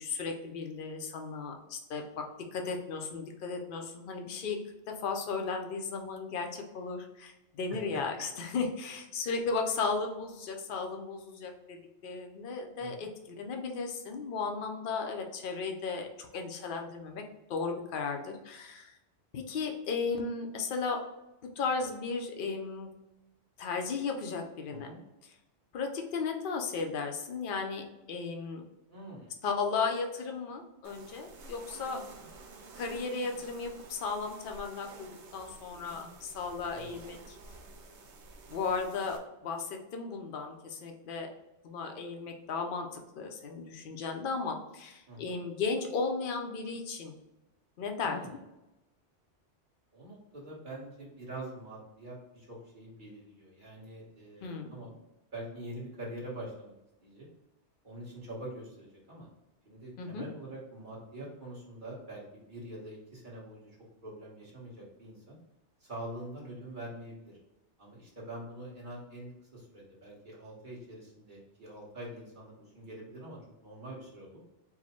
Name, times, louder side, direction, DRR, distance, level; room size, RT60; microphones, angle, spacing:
voice 1, 0.0-2.2 2.5-4.6 4.9-17.2 17.5-19.0 19.3-21.0 21.6-22.9 23.6-24.9 25.7-28.6 29.4-32.0 32.7-37.4 38.5-41.3 41.6-47.1 47.8-48.2 54.4-54.7 60.0-60.2, left 4 dB, 55° left, 3 dB, 0.7 m, -35 dB
voice 2, 7.7-8.0 12.8-13.1 24.7-25.0 28.9-29.3 36.7-36.9 45.1-45.4 48.0-48.4 49.9-55.0 55.3-56.7 57.0-57.3 57.8-59.3 59.6-63.8 64.0-65.4 65.8-67.4 67.8-74.4, right 1 dB, 45° right, -5 dB, 1.5 m, -45 dB
sound 1, 30.8-39.2, right 3 dB, 75° right, 0.9 m, -51 dB
4.7 x 2.2 x 4.2 m, 0.95 s
omnidirectional pair, 1.2 m